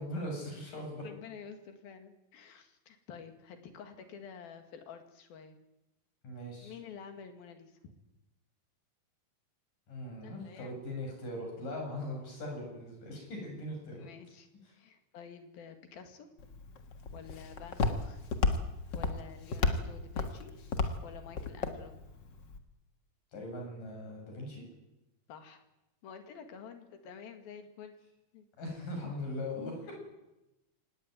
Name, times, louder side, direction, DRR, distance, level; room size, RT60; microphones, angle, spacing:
voice 1, 0.0-1.0 6.2-6.7 9.9-14.1 23.3-24.7 28.6-30.0, left 1 dB, 65° left, 1 dB, 9.0 m, -40 dB
voice 2, 1.0-5.6 6.6-7.9 10.2-10.8 14.0-14.5 14.7-16.3 17.1-18.2 18.9-20.6 21.0-21.9 25.3-25.6 26.0-28.0 28.3-28.5 29.9-30.0, left 7 dB, 85° left, 7 dB, 4.0 m, -49 dB
Walk footsteps, 16.4-22.6, left 3 dB, 45° left, 1.5 m, -34 dB
24.0 x 18.5 x 9.4 m, 0.96 s
omnidirectional pair, 4.2 m